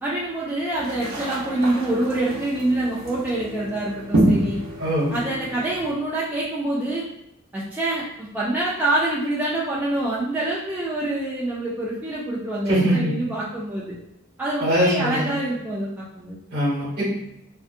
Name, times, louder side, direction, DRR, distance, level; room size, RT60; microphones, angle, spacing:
voice 1, 0.0-4.6 5.1-7.1 7.5-13.9 14.4-16.4, right 1 dB, 10° right, -8 dB, 0.4 m, -26 dB
sound 1, 0.7-5.9, right 1 dB, 75° right, 0.6 m, -27 dB
voice 2, 4.8-5.1 12.7-13.1 14.6-15.2 16.5-17.1, equal, 50° right, -5 dB, 1.3 m, -21 dB
2.6 x 2.3 x 2.5 m, 0.80 s
head